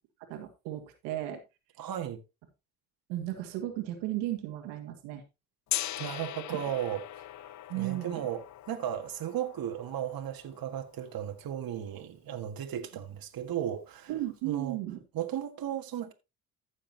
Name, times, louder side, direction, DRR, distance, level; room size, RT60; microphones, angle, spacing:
voice 1, 0.3-1.4 3.1-5.2 6.5-6.6 7.7-8.3 14.1-15.0, right 14 dB, 85° right, 2.0 m, -35 dB
voice 2, 1.8-2.2 6.0-7.2 7.7-14.1 14.4-14.8 15.1-16.1, right 10 dB, 55° right, 1.8 m, -35 dB
Gong, 5.7-11.6, left 13 dB, 45° left, 0.5 m, -40 dB
15.0 x 6.6 x 2.8 m
supercardioid pair, 65°, 41 cm